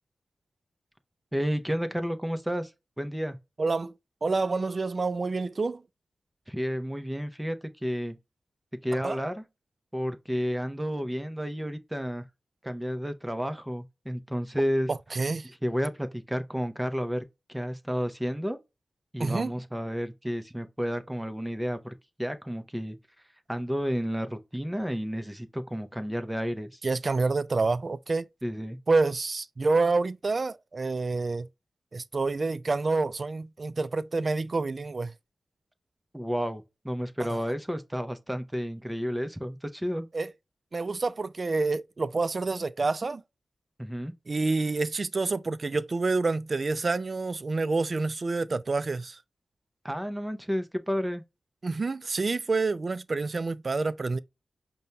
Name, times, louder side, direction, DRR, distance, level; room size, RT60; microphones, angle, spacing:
voice 1, 1.3-2.7 3.0-3.4 6.5-8.2 8.8-9.4 9.9-12.2 12.6-14.9 15.6-18.6 19.1-23.0 23.5-26.8 28.4-28.8 36.1-40.1 43.8-44.1 49.8-51.2, equal, 10° right, 0.6 m, -31 dB
voice 2, 3.6-3.9 4.2-5.8 9.0-9.2 14.9-15.5 19.2-19.5 26.8-28.3 28.9-31.5 31.9-35.1 37.2-37.4 40.1-40.3 40.7-43.2 44.3-49.2 51.6-54.2, right 3 dB, 50° right, 0.3 m, -28 dB
5.2 x 2.2 x 2.8 m
cardioid pair, 60°, 0 cm